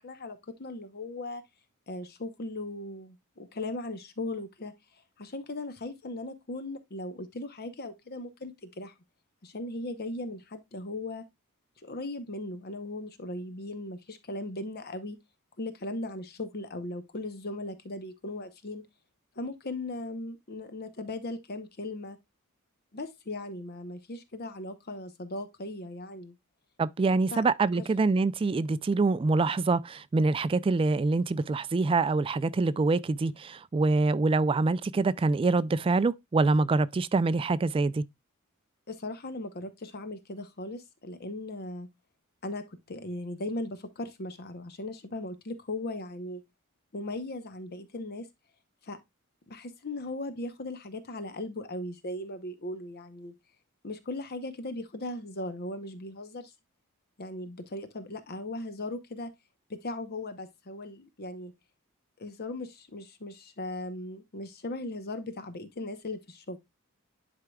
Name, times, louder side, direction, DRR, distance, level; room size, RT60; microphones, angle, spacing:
voice 1, 0.0-1.4 1.9-4.7 5.2-8.9 9.4-11.3 11.8-15.2 15.6-18.8 19.4-22.2 22.9-26.4 27.3-27.4 27.7-27.9 38.9-41.9 42.4-46.4 46.9-48.3 48.8-49.0 49.5-53.3 53.8-56.5 57.2-59.3 59.7-61.5 62.2-66.6, left 2 dB, 45° left, 0.9 m, -38 dB
voice 2, 26.8-38.0, right 3 dB, 25° right, 0.3 m, -25 dB
11.0 x 4.7 x 2.3 m
head